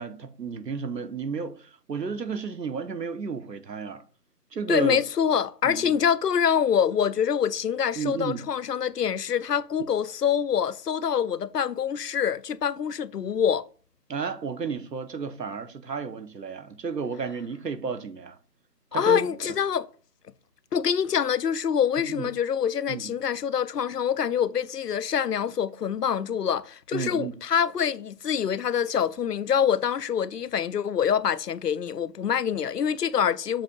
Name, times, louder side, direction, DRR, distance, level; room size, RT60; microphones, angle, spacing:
voice 1, 0.0-4.0 4.5-5.0 5.6-6.0 8.0-8.5 14.1-18.4 18.9-19.5 22.1-22.3 22.9-23.1 26.9-27.3, right 5 dB, 80° right, 0.9 m, -32 dB
voice 2, 4.7-13.7 18.9-19.9 20.7-33.6, left 8 dB, 70° left, 0.5 m, -25 dB
7.4 x 2.7 x 5.2 m
figure-of-eight pair, 180°, 49 cm